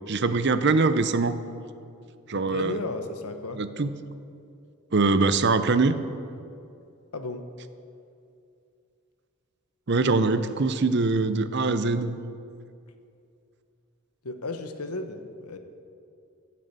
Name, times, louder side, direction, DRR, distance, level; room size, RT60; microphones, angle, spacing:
voice 1, 0.1-1.4 2.3-2.8 3.5-3.9 4.9-6.0 9.9-12.2, right 3 dB, 50° right, 11 dB, 0.7 m, -23 dB
voice 2, 2.3-3.6 7.1-7.5 14.2-15.6, left 2 dB, 90° left, 7 dB, 1.2 m, -34 dB
15.5 x 7.7 x 8.2 m, 2.5 s
head